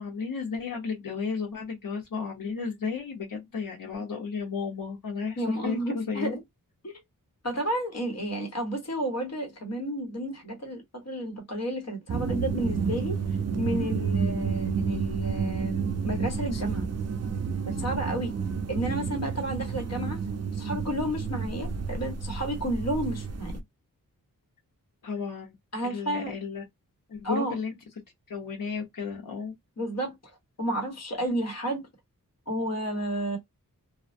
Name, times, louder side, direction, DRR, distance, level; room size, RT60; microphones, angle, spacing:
voice 1, 0.0-6.4 25.0-25.5 25.8-26.6 27.1-27.8 28.3-29.5, left 5 dB, 75° left, 0.9 m, -33 dB
voice 2, 5.4-6.4 6.8-7.0 7.4-13.2 13.6-16.9 17.7-18.3 18.7-20.2 20.5-23.6 25.7-26.3 27.2-27.6 29.8-30.2 30.6-31.9 32.5-33.4, right 1 dB, 50° left, 1.2 m, -31 dB
sound 1, 12.1-23.6, right 5 dB, 50° right, 0.5 m, -30 dB
2.3 x 2.1 x 2.6 m
wide cardioid pair, 80°, 34 cm